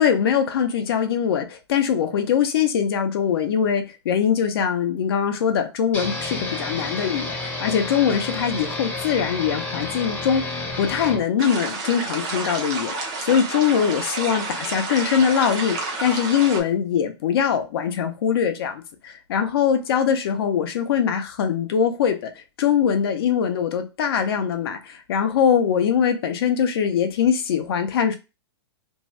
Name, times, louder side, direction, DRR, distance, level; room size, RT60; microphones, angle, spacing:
voice 1, 0.0-10.5 10.8-22.3 22.6-28.1, left 8 dB, 60° left, 0.6 m, -22 dB
sound 1, 5.9-11.2, left 2 dB, 10° left, 0.8 m, -30 dB
sound 2, 11.4-16.6, right 3 dB, 25° right, 0.6 m, -30 dB
2.6 x 2.2 x 3.1 m
hypercardioid pair, 150°, 14 cm